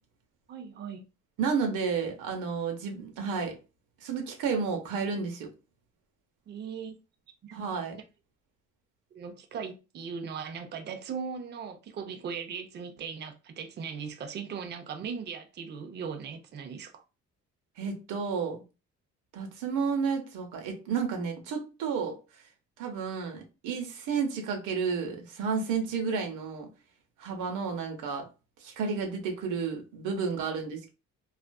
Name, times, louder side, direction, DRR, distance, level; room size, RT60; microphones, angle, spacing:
voice 1, 0.5-1.0 6.5-6.9 7.4-7.6 7.9-8.0 9.1-17.0, right 6 dB, 35° right, 0.4 m, -38 dB
voice 2, 1.4-3.5 4.0-5.5 7.5-7.9 17.8-18.6 19.3-22.1 22.8-26.7 27.2-28.2 28.6-30.9, right 5 dB, 90° right, 0.8 m, -31 dB
2.4 x 2.3 x 2.2 m
cardioid pair, 90°, 30 cm